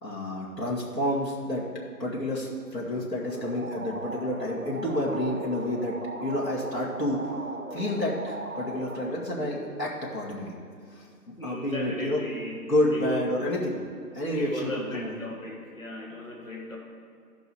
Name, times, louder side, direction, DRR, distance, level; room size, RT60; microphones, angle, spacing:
voice 1, 0.0-1.7 2.0-10.5 10.9-12.3 12.6-13.8 14.1-15.2, left 1 dB, 80° left, -5 dB, 2.3 m, -29 dB
sound 1, 3.2-10.6, right 2 dB, 55° right, 0.8 m, -39 dB
voice 2, 11.4-12.5 12.9-13.2 14.4-16.8, left 1 dB, 55° left, -1 dB, 1.5 m, -37 dB
13.5 x 5.5 x 4.6 m, 2.3 s
figure-of-eight pair, 175°, 49 cm